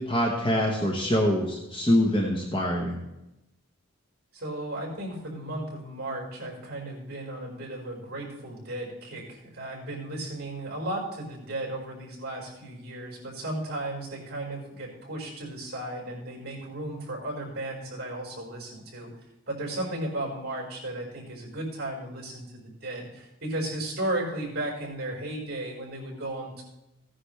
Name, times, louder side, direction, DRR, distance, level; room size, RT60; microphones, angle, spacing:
voice 1, 0.0-3.0, left 1 dB, 20° left, -1 dB, 1.1 m, -24 dB
voice 2, 4.3-19.1 19.5-26.6, right 1 dB, 45° right, -1 dB, 4.7 m, -35 dB
16.0 x 10.0 x 3.3 m, 0.94 s
head